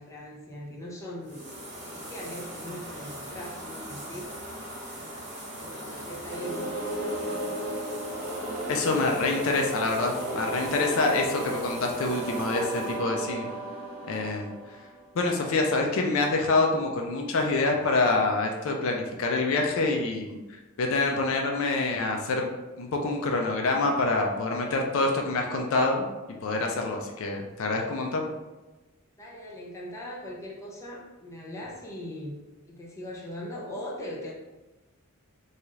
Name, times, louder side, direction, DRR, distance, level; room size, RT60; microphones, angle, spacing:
voice 1, 0.0-1.5 1.8-4.5 4.9-5.1 5.6-7.7 29.2-32.4 32.6-34.3, left 1 dB, 15° left, -4 dB, 0.6 m, -40 dB
sound 1, 1.2-13.0, equal, 35° right, 0.9 m, -41 dB
sound 2, 6.2-15.1, right 1 dB, 80° right, 1.0 m, -34 dB
voice 2, 8.7-13.5 14.1-14.5 15.1-20.4 20.8-22.5 22.8-26.1 26.4-28.3, left 3 dB, 65° left, 2 dB, 0.4 m, -26 dB
2.7 x 2.3 x 3.0 m, 1.1 s
head